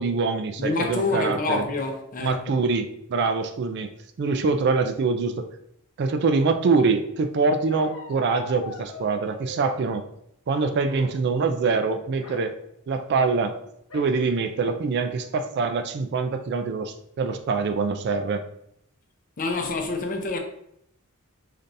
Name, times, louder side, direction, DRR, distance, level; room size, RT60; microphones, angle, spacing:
voice 1, 0.0-1.7 2.2-3.9 4.2-5.5 6.0-10.0 10.5-12.5 12.9-13.6 13.9-18.4, right 4 dB, 50° right, 0.3 m, -24 dB
voice 2, 0.6-2.5 19.4-20.4, left 3 dB, 40° left, 0.6 m, -27 dB
Bark, 7.7-9.8 10.5-11.2 11.5-11.8 12.1-12.5 13.9-14.2 14.7-14.8 15.1-15.6, left 3 dB, 75° left, 0.9 m, -41 dB
3.9 x 3.3 x 2.6 m
head